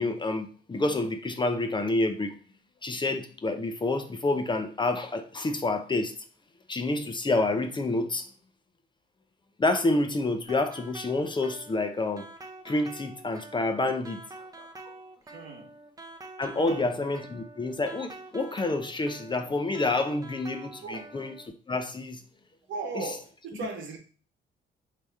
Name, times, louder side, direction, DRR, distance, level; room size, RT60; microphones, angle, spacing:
voice 1, 0.0-2.4 2.8-6.1 6.7-8.3 9.6-12.3 12.6-14.2 14.6-14.7 16.4-21.3 21.7-22.2 23.0-23.1, left 2 dB, 25° left, 0.6 m, -28 dB
sound 1, 10.4-21.5, right 2 dB, 20° right, 0.7 m, -47 dB
voice 2, 15.3-15.7 16.6-16.9 20.8-21.1 22.7-24.0, right 3 dB, 75° right, 1.2 m, -37 dB
3.4 x 2.8 x 4.7 m
cardioid pair, 90°, 20 cm